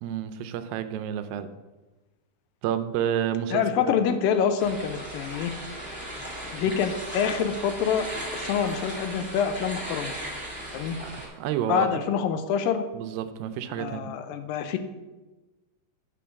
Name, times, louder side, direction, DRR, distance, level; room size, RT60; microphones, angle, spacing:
voice 1, 0.0-1.5 2.6-3.6 10.6-11.9 12.9-14.1, right 10 dB, 85° right, 11 dB, 2.3 m, -30 dB
voice 2, 3.5-5.5 6.4-10.1 10.7-11.0 11.7-12.8 13.8-14.8, left 7 dB, 80° left, 9 dB, 2.3 m, -26 dB
sound 1, 4.6-11.3, right 1 dB, 15° left, 0.4 m, -37 dB
8.5 x 3.9 x 6.9 m, 1.2 s
omnidirectional pair, 4.1 m